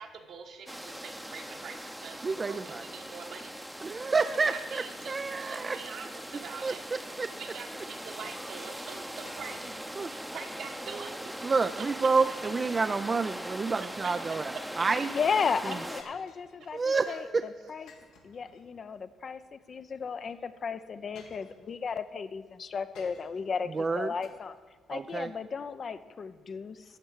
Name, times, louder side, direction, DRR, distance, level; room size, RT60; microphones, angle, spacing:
voice 1, 0.0-3.9 4.7-5.2 5.4-6.8 7.4-9.7 10.1-11.5, right 5 dB, 70° right, 3 dB, 1.4 m, -45 dB
sound 1, 0.7-16.0, equal, 5° right, 0.7 m, -41 dB
voice 2, 2.2-2.9 3.8-5.8 6.3-7.3 8.4-10.1 10.8-11.1 11.4-15.1 15.6-15.8 16.7-17.5 23.7-24.1 24.9-25.3, right 4 dB, 35° right, 9 dB, 0.4 m, -30 dB
sound 2, 8.9-10.0 10.4-10.5 11.1-11.5 13.4-14.2 16.0-17.0 17.9-19.0 20.2-20.3 21.1-22.0 22.9-23.5 24.2-24.3, left 4 dB, 85° left, 1.6 m, -57 dB
voice 3, 15.1-16.8 17.1-17.2 17.7-17.9 18.2-24.5 24.9-26.8, left 5 dB, 45° left, 12 dB, 0.6 m, -34 dB
13.0 x 4.6 x 8.2 m, 1.5 s
cardioid pair, 80°, 0 cm